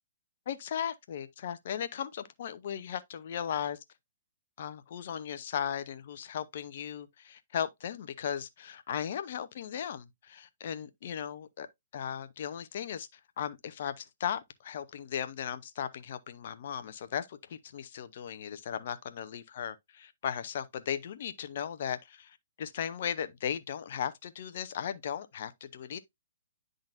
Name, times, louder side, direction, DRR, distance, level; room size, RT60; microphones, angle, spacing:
voice 1, 0.5-3.8 4.6-11.7 11.9-26.0, left 9 dB, 55° left, 0.8 m, -37 dB
10.5 x 3.9 x 2.6 m
hypercardioid pair, 130°, 0 cm